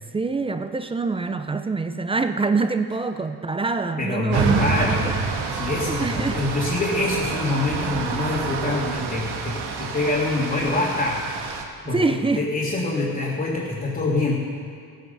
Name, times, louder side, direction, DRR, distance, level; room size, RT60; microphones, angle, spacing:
voice 1, 0.1-5.1 5.9-6.4 11.8-12.4, right 3 dB, 15° right, 8 dB, 0.4 m, -25 dB
voice 2, 4.0-5.1 5.5-11.3 11.9-14.5, left 2 dB, 20° left, -6 dB, 2.0 m, -25 dB
sound 1, 4.3-11.6, right 5 dB, 85° right, 1.5 m, -28 dB
15.5 x 9.2 x 6.6 m, 2.3 s
cardioid pair, 160°, 39 cm